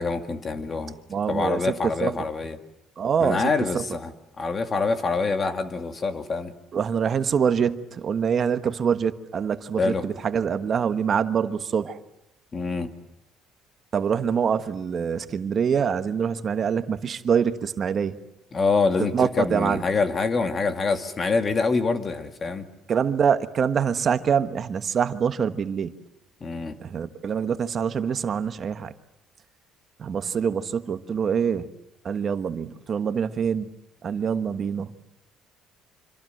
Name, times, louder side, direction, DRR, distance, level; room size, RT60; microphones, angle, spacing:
voice 1, 0.0-0.9 1.3-2.6 3.2-4.1 4.4-6.5 9.8-10.0 12.5-12.9 18.5-22.7 26.4-26.8, left 4 dB, 25° left, 8 dB, 2.2 m, -25 dB
voice 2, 1.1-2.2 3.0-3.8 6.7-12.0 13.9-18.2 19.1-19.8 22.9-25.9 26.8-28.9 30.0-31.7 32.0-33.7 34.0-34.9, right 7 dB, 35° right, 10 dB, 1.3 m, -25 dB
26.5 x 25.5 x 7.8 m, 0.85 s
cardioid pair, 145°, 0 cm